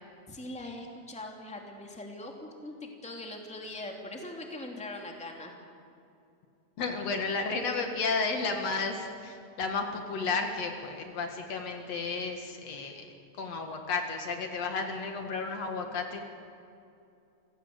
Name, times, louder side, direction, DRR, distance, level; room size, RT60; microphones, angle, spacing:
voice 1, 0.3-5.5, left 1 dB, ahead, 1 dB, 2.4 m, -41 dB
voice 2, 6.8-13.1 13.4-16.2, left 4 dB, 65° left, 4 dB, 2.8 m, -32 dB
28.5 x 16.5 x 7.9 m, 2.6 s
omnidirectional pair, 3.3 m